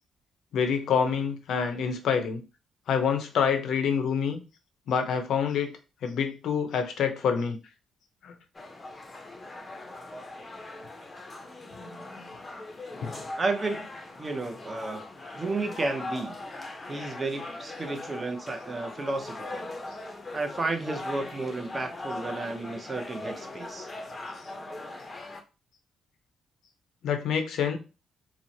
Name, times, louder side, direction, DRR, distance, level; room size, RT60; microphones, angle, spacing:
voice 1, 0.5-2.4 2.9-4.4 4.9-5.7 6.0-7.6 8.2-8.3 27.0-27.8, left 7 dB, 70° left, 6 dB, 0.5 m, -26 dB
sound 1, 8.5-25.4, left 2 dB, 25° left, 0.5 m, -40 dB
voice 2, 13.4-13.9 14.2-15.0 15.3-16.4 16.9-19.7 20.3-23.9, right 3 dB, 30° right, 5 dB, 0.6 m, -32 dB
3.0 x 2.0 x 2.6 m, 0.30 s
cardioid pair, 90°, 0 cm